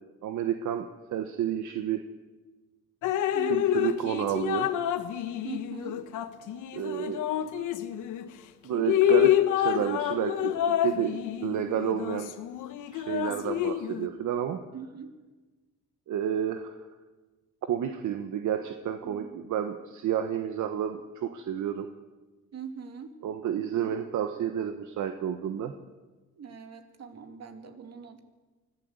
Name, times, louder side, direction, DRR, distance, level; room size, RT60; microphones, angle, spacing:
voice 1, 0.2-2.0 3.5-4.7 6.7-7.2 8.6-10.5 10.8-12.3 12.9-14.6 16.1-16.7 17.7-21.9 23.2-25.7, right 9 dB, 75° right, 7 dB, 1.3 m, -30 dB
Drip, 3.0-8.3 8.7-14.1, left 12 dB, 90° left, 1.3 m, -28 dB
voice 2, 3.3-3.9 5.4-6.0 13.3-13.7 14.7-15.1 19.0-19.5 22.5-23.1 23.8-23.9 26.4-28.2, right 6 dB, 55° right, 6 dB, 2.8 m, -42 dB
24.0 x 15.5 x 8.1 m, 1.2 s
cardioid pair, 90°, 30 cm